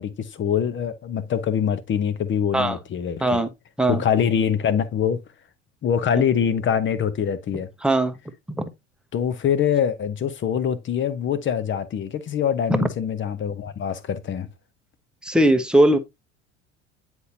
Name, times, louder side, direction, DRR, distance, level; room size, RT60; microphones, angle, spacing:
voice 1, 0.0-3.4 3.9-5.2 5.8-7.7 9.1-14.5, left 8 dB, 30° left, 0.9 m, -24 dB
voice 2, 7.8-8.1 8.6-8.7 15.2-16.0, right 1 dB, ahead, 0.9 m, -19 dB
9.5 x 4.5 x 2.6 m
figure-of-eight pair, 65°, 38 cm